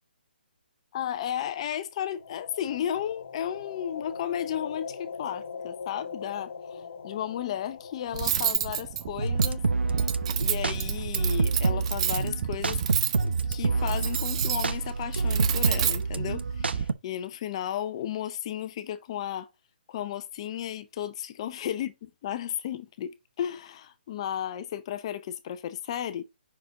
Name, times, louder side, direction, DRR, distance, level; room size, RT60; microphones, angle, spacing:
voice 1, 0.9-10.1 10.4-12.8 13.2-19.5 19.9-21.9 22.2-26.2, left 10 dB, 35° left, 0.6 m, -34 dB
sound 1, 2.1-10.1, left 5 dB, 60° left, 1.5 m, -42 dB
Cutlery silverware, 8.1-16.8, right 10 dB, 35° right, 0.7 m, -31 dB
sound 2, 9.2-16.9, right 4 dB, 90° right, 0.7 m, -28 dB
5.8 x 4.8 x 3.7 m
hypercardioid pair, 155°, 6 cm